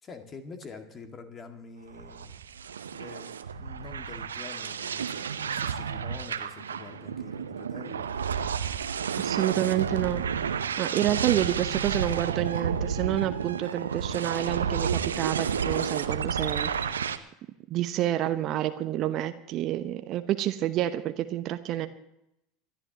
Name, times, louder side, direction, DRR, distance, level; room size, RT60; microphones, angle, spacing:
voice 1, 0.0-2.4 2.9-8.1, left 4 dB, 30° left, 5 dB, 2.1 m, -46 dB
sound 1, 1.9-17.2, right 7 dB, 75° right, 0.7 m, -31 dB
voice 2, 9.2-10.2 10.8-17.0 17.7-21.9, right 12 dB, 45° right, 10 dB, 0.9 m, -29 dB
27.0 x 12.0 x 3.0 m, 0.82 s
figure-of-eight pair, 75°, 0 cm